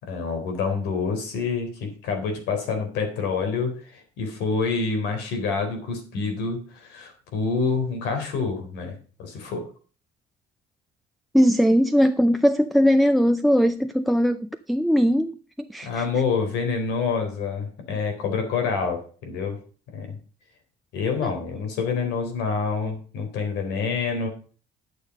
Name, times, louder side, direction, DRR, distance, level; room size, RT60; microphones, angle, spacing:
voice 1, 0.0-9.7 15.8-19.6 19.9-20.2 20.9-24.3, left 5 dB, 85° left, 3.9 m, -27 dB
voice 2, 11.3-16.1 21.2-21.3, equal, ahead, 0.5 m, -20 dB
11.0 x 6.7 x 5.3 m
cardioid pair, 110°, 17 cm